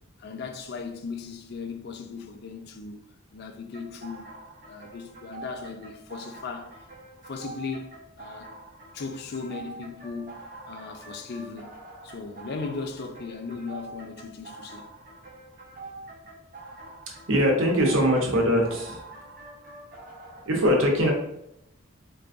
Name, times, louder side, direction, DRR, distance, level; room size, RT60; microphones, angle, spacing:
voice 1, 0.2-3.0 3.3-4.3 4.6-6.8 7.3-7.9 8.2-8.5 8.9-10.4 10.7-11.7 12.0-14.9, left 4 dB, 55° left, 0.4 m, -37 dB
sound 1, 3.7-20.4, right 2 dB, 45° right, 0.7 m, -45 dB
voice 2, 17.3-19.0 20.4-21.1, equal, 75° right, 0.8 m, -22 dB
4.0 x 2.3 x 2.5 m
head